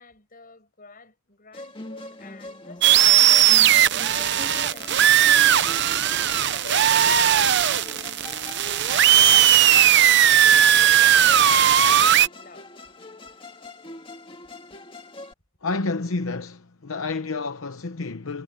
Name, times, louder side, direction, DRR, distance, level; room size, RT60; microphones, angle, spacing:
voice 1, 0.0-6.2 6.5-9.8 10.2-12.7, left 3 dB, 40° left, 7.1 m, -47 dB
Musical instrument, 1.5-15.3, left 2 dB, 25° left, 1.9 m, -42 dB
sound 1, 2.8-12.3, right 10 dB, 50° right, 0.8 m, -17 dB
voice 2, 15.6-18.4, left 3 dB, 65° left, 0.9 m, -29 dB
head